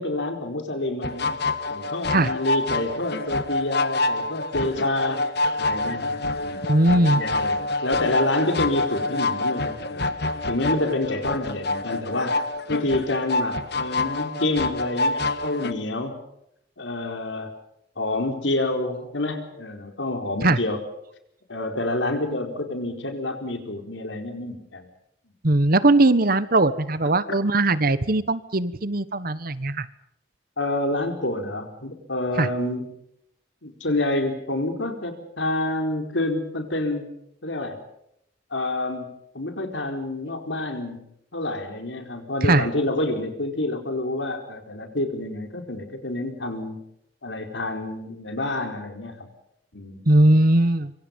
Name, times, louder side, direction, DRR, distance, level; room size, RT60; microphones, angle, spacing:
voice 1, 0.0-5.2 5.6-10.1 10.5-12.4 12.7-16.2 16.8-17.5 18.0-20.8 21.5-24.9 27.3-27.4 30.6-32.9 33.6-37.1 37.4-37.8 38.5-41.1 41.3-46.8 47.2-49.3 49.7-50.0, left 2 dB, 80° left, 5 dB, 4.6 m, -28 dB
sound 1, 1.0-15.7, left 2 dB, 60° left, 1.6 m, -27 dB
voice 2, 6.6-7.2 20.4-20.6 25.4-29.9 32.4-32.5 42.4-42.6 50.1-50.9, right 2 dB, 50° right, 15 dB, 1.3 m, -19 dB
25.5 x 25.0 x 5.5 m, 0.77 s
head